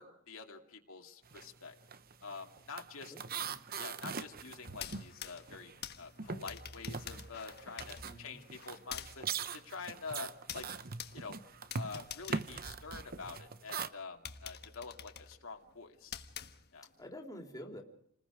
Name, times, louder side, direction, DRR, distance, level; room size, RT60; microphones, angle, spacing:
voice 1, 0.0-1.7 2.2-3.1 3.8-9.3 9.5-10.7 11.1-11.4 11.7-16.2 16.7-16.9, left 4 dB, 70° left, 2 dB, 2.4 m, -47 dB
sound 1, 1.3-1.5 1.8-5.9 6.2-13.9, right 5 dB, 45° right, 0.9 m, -42 dB
voice 2, 3.1-3.6 8.0-8.4 17.0-17.8, equal, 15° left, 2 dB, 3.3 m, -48 dB
sound 2, 4.7-13.4 13.8-13.9 14.2-17.0, left 8 dB, 50° left, 1.4 m, -48 dB
29.5 x 20.0 x 5.0 m, 0.70 s
head